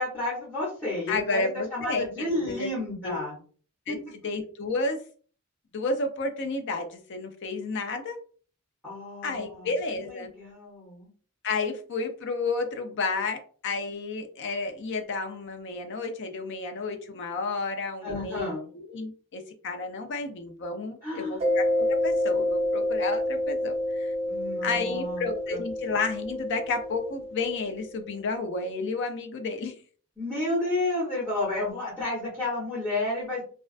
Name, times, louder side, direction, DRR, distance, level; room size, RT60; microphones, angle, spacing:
voice 1, 0.0-3.4 3.9-4.0 8.8-9.7 9.9-11.1 18.0-18.6 21.0-21.4 24.3-25.6 30.2-33.4, left 2 dB, 10° left, -9 dB, 1.0 m, -31 dB
voice 2, 1.1-2.7 3.0-3.1 3.9-4.0 4.2-5.0 5.7-8.2 9.2-10.3 11.4-18.5 18.7-24.1 24.6-29.7, left 3 dB, 55° left, 5 dB, 0.5 m, -31 dB
Mallet percussion, 21.4-27.8, left 1 dB, 30° right, 0.4 m, -28 dB
2.4 x 2.2 x 2.4 m, 0.42 s
head